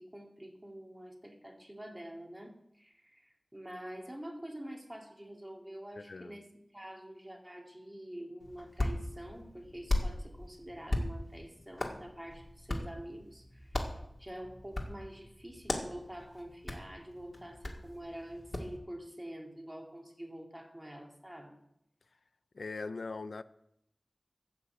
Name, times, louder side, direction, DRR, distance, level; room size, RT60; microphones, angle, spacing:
voice 1, 0.0-13.9 14.2-21.5, right 1 dB, 15° right, 2.2 m, -47 dB
voice 2, 6.0-6.4 22.5-23.4, left 3 dB, 80° left, 0.5 m, -40 dB
Hands, 8.4-18.8, left 1 dB, 40° left, 2.0 m, -38 dB
12.5 x 5.7 x 8.0 m
wide cardioid pair, 65°, 0 cm